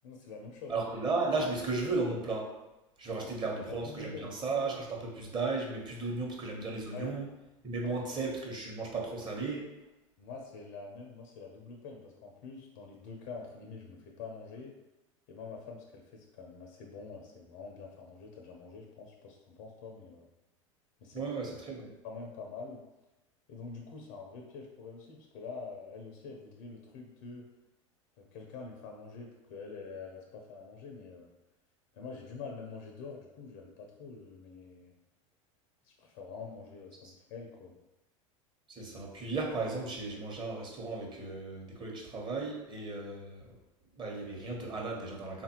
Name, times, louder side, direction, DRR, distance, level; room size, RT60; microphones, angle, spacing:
voice 1, 0.0-0.9 3.2-3.3 3.6-4.4 6.9-7.1 7.8-8.0 10.2-14.7 15.3-20.3 21.0-21.2 22.0-22.8 23.5-27.5 28.2-31.3 31.9-34.9 35.8-37.8, left 4 dB, 65° left, 1 dB, 0.6 m, -46 dB
voice 2, 0.7-2.5 3.0-7.3 7.6-9.7 21.1-21.9 38.7-43.5 43.9-45.4, right 3 dB, 30° right, -1 dB, 1.0 m, -35 dB
3.6 x 2.5 x 2.9 m, 0.97 s
hypercardioid pair, 90°, 17 cm